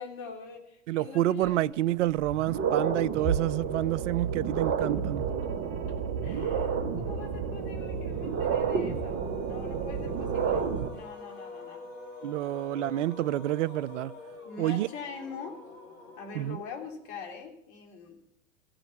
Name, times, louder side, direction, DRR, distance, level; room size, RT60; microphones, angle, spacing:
voice 1, 0.0-2.0 6.2-11.8 14.4-15.6 16.2-18.2, left 5 dB, 50° left, 3.4 m, -43 dB
voice 2, 0.9-5.3 12.2-14.1 14.6-14.9 16.3-16.6, right 15 dB, 70° right, 0.5 m, -28 dB
sound 1, 1.5-1.6 2.1-10.9, right 6 dB, 40° right, 1.8 m, -30 dB
sound 2, 7.6-17.0, left 3 dB, 70° left, 4.5 m, -46 dB
16.0 x 8.9 x 7.0 m
hypercardioid pair, 95°, 38 cm